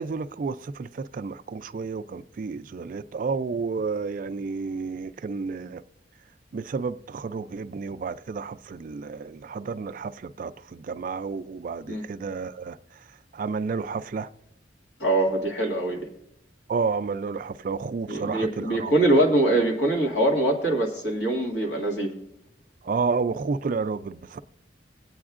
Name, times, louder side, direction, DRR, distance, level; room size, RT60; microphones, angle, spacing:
voice 1, 0.0-5.8 6.5-13.0 13.3-14.3 16.7-18.9 22.8-24.4, right 4 dB, 45° right, 0.3 m, -31 dB
voice 2, 15.0-16.0 18.1-22.1, right 1 dB, 70° left, 2.1 m, -23 dB
21.0 x 8.6 x 2.4 m
head